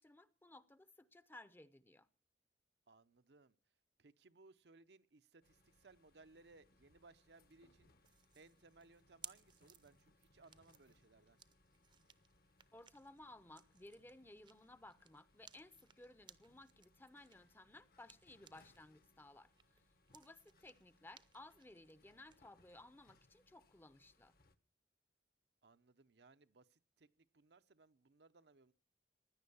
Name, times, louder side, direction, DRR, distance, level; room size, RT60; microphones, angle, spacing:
voice 1, 0.0-2.1 12.7-19.8 20.1-24.3, left 2 dB, 10° left, 0.7 m, -59 dB
voice 2, 2.9-3.6 4.0-7.9 8.3-11.4 19.6-19.9 25.6-28.7, right 3 dB, 70° right, 0.8 m, -65 dB
sound 1, 5.4-24.6, left 2 dB, 55° left, 1.2 m, -73 dB
sound 2, 8.0-18.8 19.2-22.4, right 8 dB, 25° right, 0.7 m, -62 dB
16.5 x 10.5 x 7.0 m
head